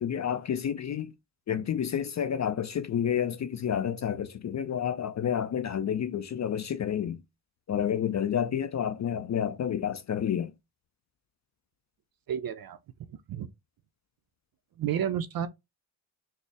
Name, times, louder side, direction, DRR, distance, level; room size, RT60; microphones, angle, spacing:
voice 1, 0.0-1.1 1.5-7.2 7.7-10.5, left 9 dB, 40° left, 0.4 m, -29 dB
voice 2, 12.3-12.8 13.1-13.5 14.8-15.5, right 9 dB, 50° right, 0.5 m, -31 dB
3.9 x 2.0 x 3.4 m
supercardioid pair, 60°, 49 cm